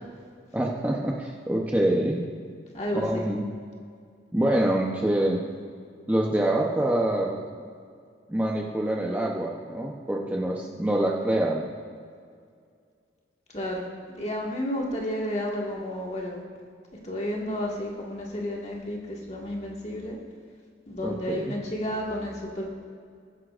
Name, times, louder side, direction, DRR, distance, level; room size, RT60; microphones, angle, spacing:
voice 1, 0.5-2.2 2.9-3.4 4.3-5.4 6.1-7.4 8.3-11.7 21.0-21.5, right 1 dB, 10° right, -2 dB, 0.7 m, -25 dB
voice 2, 2.7-3.2 13.5-13.8 14.2-16.4 17.0-20.2 20.9-22.7, equal, 35° left, -2 dB, 1.8 m, -31 dB
21.0 x 9.8 x 2.5 m, 2.2 s
head